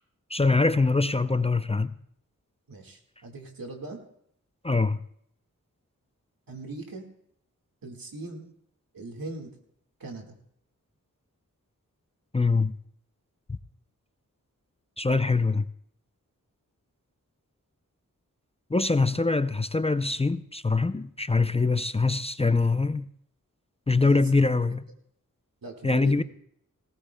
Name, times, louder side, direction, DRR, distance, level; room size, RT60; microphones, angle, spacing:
voice 1, 0.3-2.0 4.6-5.0 12.3-12.7 13.5-13.6 15.0-15.7 18.7-23.1 23.9-24.8 25.8-26.2, left 3 dB, 20° left, 0.5 m, -23 dB
voice 2, 2.7-4.0 6.5-7.1 7.8-8.4 8.9-9.5 10.0-10.3 24.0-24.4 25.6-26.2, right 2 dB, 90° right, 1.9 m, -39 dB
18.5 x 18.0 x 2.2 m
wide cardioid pair, 50°, 34 cm